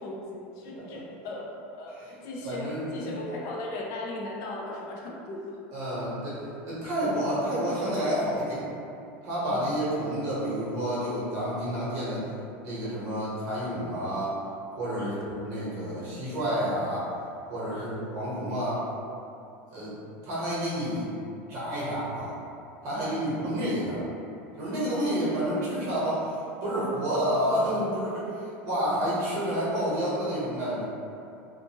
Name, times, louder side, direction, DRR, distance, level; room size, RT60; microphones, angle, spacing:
voice 1, 0.0-5.4 9.5-9.7 15.0-15.2 17.7-17.9 22.9-23.2, left 2 dB, 60° left, -2 dB, 0.5 m, -38 dB
voice 2, 2.4-3.1 5.7-8.6 9.2-12.3 12.6-14.3 14.8-17.0 17.5-18.8 19.7-20.0 20.2-21.1 21.5-22.3 22.8-24.0 24.6-28.3 28.6-30.8, equal, 60° right, -8 dB, 1.0 m, -29 dB
2.5 x 2.5 x 2.8 m, 2.6 s
supercardioid pair, 120°, 6 cm